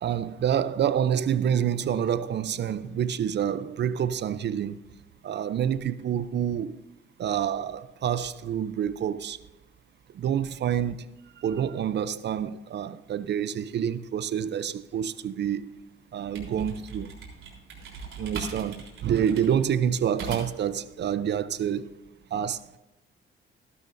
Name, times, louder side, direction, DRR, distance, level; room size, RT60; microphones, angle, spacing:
voice 1, 0.0-4.8 5.2-6.8 7.2-9.4 10.1-11.0 11.4-15.8 16.1-17.1 18.2-21.9 22.3-22.8, right 9 dB, 55° right, 0.6 m, -27 dB
sound 1, 16.0-20.7, right 4 dB, 70° right, 3.7 m, -39 dB
15.5 x 12.0 x 2.6 m
cardioid pair, 105°, 21 cm